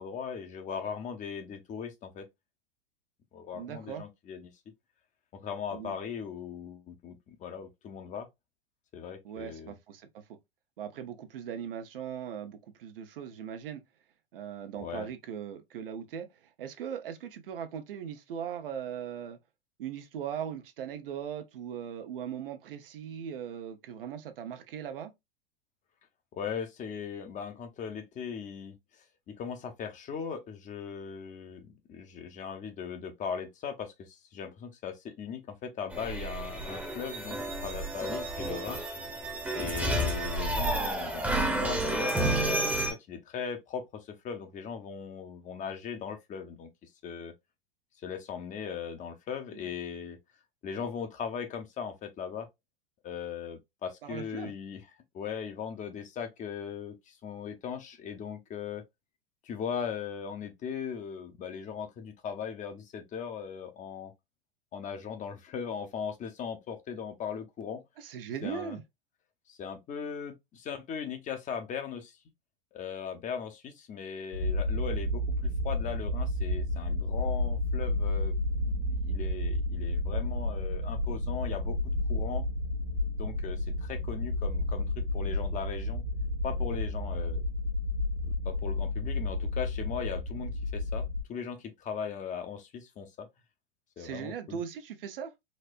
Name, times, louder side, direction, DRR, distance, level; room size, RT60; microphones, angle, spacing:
voice 1, 0.0-2.3 3.3-4.5 5.3-8.3 8.9-9.7 14.8-15.1 26.3-38.8 39.6-46.7 47.0-47.3 48.0-50.2 50.6-52.5 53.0-54.8 55.1-58.8 59.4-64.1 64.7-67.8 68.4-68.8 69.5-72.2 72.7-78.3 78.6-81.8 82.1-82.4 83.2-86.0 86.4-87.4 88.4-93.3 94.0-94.6, left 7 dB, 25° left, 0.7 m, -39 dB
voice 2, 3.5-4.0 5.7-5.9 9.2-10.1 10.8-13.8 14.3-16.3 16.6-19.4 19.8-25.1 49.5-49.7 54.0-54.5 68.0-68.8 94.0-95.3, right 8 dB, 70° right, 0.8 m, -39 dB
sound 1, 35.9-42.9, right 1 dB, 5° right, 0.8 m, -31 dB
sound 2, 74.3-91.2, left 1 dB, 65° left, 1.6 m, -31 dB
4.2 x 2.1 x 2.5 m
hypercardioid pair, 100°, 29 cm